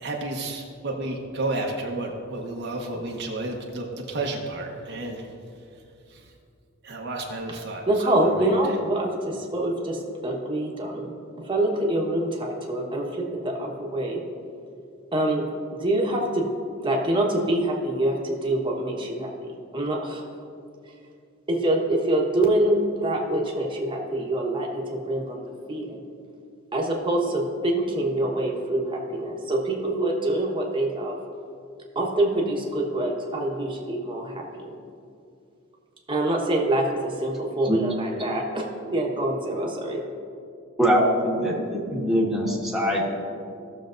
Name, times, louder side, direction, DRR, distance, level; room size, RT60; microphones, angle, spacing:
voice 1, 0.0-5.3 6.1-6.2 6.8-7.9 8.2-8.5, right 2 dB, 55° right, 0 dB, 1.0 m, -31 dB
voice 2, 7.9-11.1 11.4-14.2 15.1-15.4 15.7-16.5 16.8-20.2 21.5-26.0 26.7-31.2 31.9-34.7 36.1-40.0, right 1 dB, 25° right, -1 dB, 1.2 m, -25 dB
voice 3, 40.8-43.0, equal, ahead, -4 dB, 1.5 m, -22 dB
16.5 x 6.8 x 2.6 m, 2.5 s
head